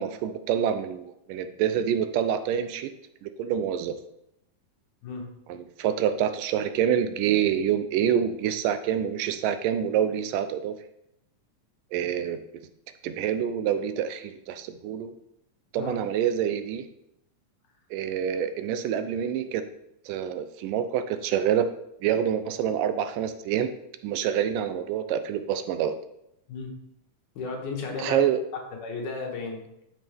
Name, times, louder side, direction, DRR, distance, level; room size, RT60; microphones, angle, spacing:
voice 1, 0.0-2.9 3.2-3.9 5.5-10.8 11.9-12.4 13.0-15.1 15.7-16.9 17.9-19.6 20.1-21.7 22.0-23.7 24.0-25.9 28.0-28.4, right 9 dB, 80° right, 10 dB, 2.2 m, -26 dB
voice 2, 27.4-28.2 28.8-29.6, left 4 dB, 70° left, 1 dB, 2.8 m, -34 dB
12.0 x 5.5 x 3.5 m, 0.80 s
omnidirectional pair, 3.9 m